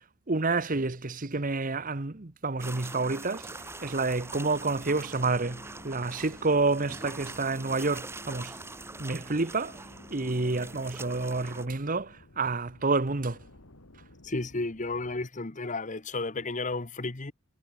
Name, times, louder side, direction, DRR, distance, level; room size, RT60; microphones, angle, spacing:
voice 1, 0.3-8.6 9.0-9.8 10.1-13.4, right 3 dB, 40° right, 1.1 m, -29 dB
sound 1, 2.6-11.7, right 2 dB, 10° right, 2.2 m, -43 dB
sound 2, 3.4-15.3, left 1 dB, 75° left, 2.5 m, -54 dB
voice 2, 14.2-17.3, left 3 dB, 35° left, 1.2 m, -33 dB
head